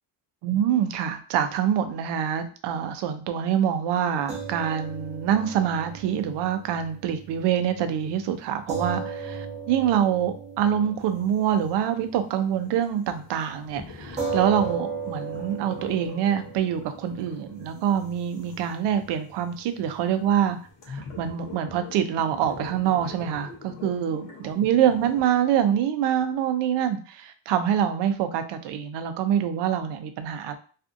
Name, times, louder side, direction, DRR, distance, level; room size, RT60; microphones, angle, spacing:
voice 1, 0.4-20.6 20.9-30.6, right 9 dB, 60° right, 9 dB, 0.5 m, -25 dB
sound 1, 4.3-12.8 13.1-13.3 14.2-20.7, right 5 dB, 15° right, 0.8 m, -37 dB
sound 2, 11.0-25.2, left 4 dB, 40° left, 0.8 m, -45 dB
2.5 x 2.5 x 2.4 m, 0.41 s
cardioid pair, 130°, 50 cm